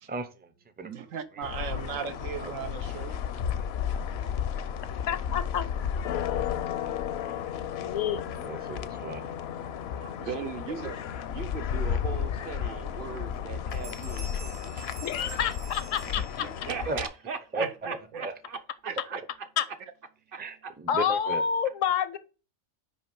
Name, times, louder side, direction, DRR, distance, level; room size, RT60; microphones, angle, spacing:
voice 1, 0.1-0.5 0.8-1.1 1.4-1.5 2.4-2.5 8.4-9.3 16.1-16.5 16.9-17.0 17.5-17.6 18.2-18.3 20.4-21.4, right 3 dB, 15° right, 0.4 m, -36 dB
voice 2, 0.8-3.1 10.0-10.1 10.8-11.0 16.4-16.7 17.6-18.2 18.9-19.2, right 7 dB, 85° right, 1.2 m, -38 dB
sound 1, 1.4-17.1, left 8 dB, 65° left, 0.7 m, -33 dB
voice 3, 5.1-5.7 7.8-8.3 15.0-16.5 19.6-19.7 20.9-22.2, left 8 dB, 85° left, 1.1 m, -28 dB
voice 4, 10.0-10.9 11.3-14.7 16.6-19.5 20.3-20.7, right 6 dB, 50° right, 0.9 m, -39 dB
Bell, 13.3-13.4 13.7-16.8, right 3 dB, 65° right, 2.5 m, -47 dB
5.9 x 5.1 x 5.3 m
omnidirectional pair, 1.3 m